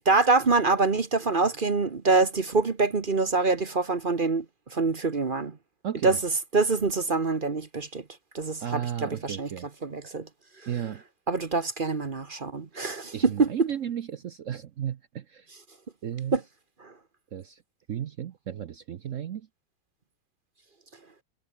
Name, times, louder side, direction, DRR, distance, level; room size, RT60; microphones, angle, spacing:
voice 1, 0.0-4.4 4.7-5.6 6.0-6.2 6.5-8.0 8.3-9.5 9.8-10.3 11.3-13.7 16.3-16.4 16.8-16.9, right 3 dB, 35° right, 1.0 m, -25 dB
voice 2, 5.8-6.2 8.6-9.7 10.7-11.0 13.1-15.5 16.0-16.4 17.3-17.6 17.9-19.5, right 10 dB, 60° right, 0.8 m, -34 dB
omnidirectional pair, 2.1 m